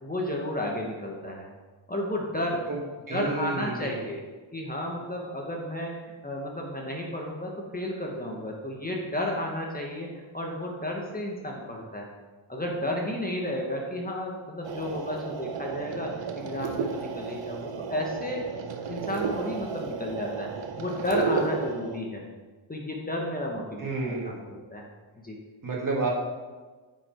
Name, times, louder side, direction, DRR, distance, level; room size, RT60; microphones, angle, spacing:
voice 1, 0.0-1.5 1.9-2.7 3.1-4.2 4.5-12.1 12.5-18.4 18.9-20.5 20.8-22.2 22.7-24.8 25.2-25.4, left 1 dB, 20° left, -1 dB, 1.3 m, -32 dB
voice 2, 3.1-4.0 23.8-24.4 25.6-26.1, right 3 dB, 40° right, -2 dB, 2.1 m, -30 dB
sound 1, 14.6-22.0, right 5 dB, 65° right, 0.9 m, -33 dB
8.6 x 5.3 x 4.5 m, 1.3 s
cardioid pair, 85°, 47 cm